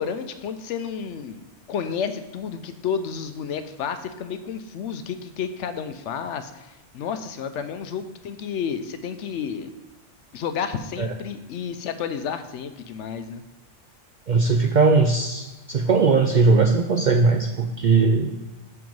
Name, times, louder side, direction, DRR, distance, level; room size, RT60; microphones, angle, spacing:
voice 1, 0.0-1.4 1.7-9.7 10.3-13.4, left 7 dB, 75° left, 9 dB, 0.9 m, -31 dB
voice 2, 14.3-18.3, right 4 dB, 65° right, 4 dB, 0.4 m, -19 dB
7.6 x 3.6 x 5.2 m, 1.1 s
omnidirectional pair, 1.3 m